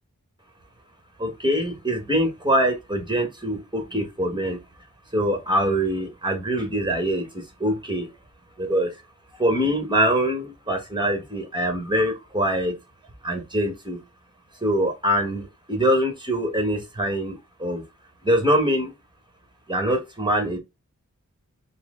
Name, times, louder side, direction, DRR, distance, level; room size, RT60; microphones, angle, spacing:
voice 1, 1.2-4.6 5.1-8.1 8.6-8.9 9.4-12.7 13.2-14.0 14.6-17.8 18.2-18.9 19.7-20.6, equal, 15° right, 1.2 m, -24 dB
4.3 x 2.0 x 3.6 m
wide cardioid pair, 70°, 31 cm